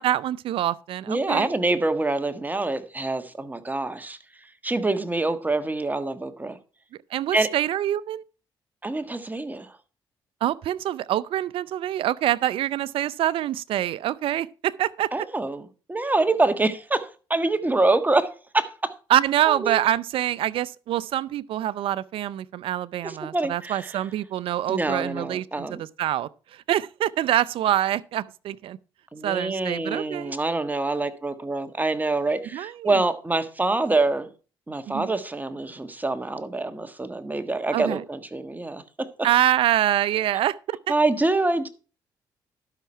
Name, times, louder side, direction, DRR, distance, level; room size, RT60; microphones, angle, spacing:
voice 1, 0.0-1.5 7.1-8.2 10.4-15.1 19.1-28.8 29.2-30.3 32.5-32.9 34.9-35.1 37.7-38.0 39.2-40.8, right 12 dB, 70° right, 0.5 m, -25 dB
voice 2, 1.1-4.2 4.6-6.6 7.3-7.5 8.8-9.8 15.1-15.6 15.9-18.9 19.4-19.8 23.0-24.0 24.7-25.8 29.1-34.3 34.7-39.1 40.9-41.7, right 2 dB, 20° right, 1.5 m, -25 dB
12.0 x 5.9 x 4.5 m
supercardioid pair, 65°, 10 cm